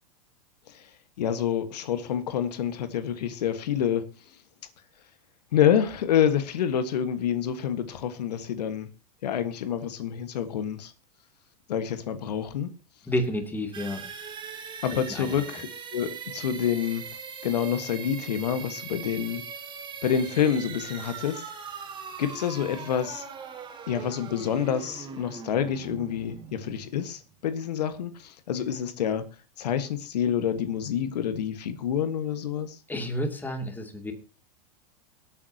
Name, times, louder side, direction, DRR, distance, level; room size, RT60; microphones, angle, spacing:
voice 1, 1.2-4.1 5.5-8.9 9.2-10.9 11.7-12.7 14.8-17.0 17.4-19.4 20.0-21.4 22.2-23.2 23.9-29.3 29.6-32.8, left 9 dB, 90° left, 10 dB, 1.5 m, -27 dB
voice 2, 13.1-14.0 14.9-15.4 32.9-34.1, left 1 dB, 10° left, 4 dB, 2.5 m, -30 dB
sound 1, 13.7-27.4, right 6 dB, 25° right, 2.1 m, -41 dB
24.5 x 8.6 x 2.8 m, 0.29 s
supercardioid pair, 125°, 20 cm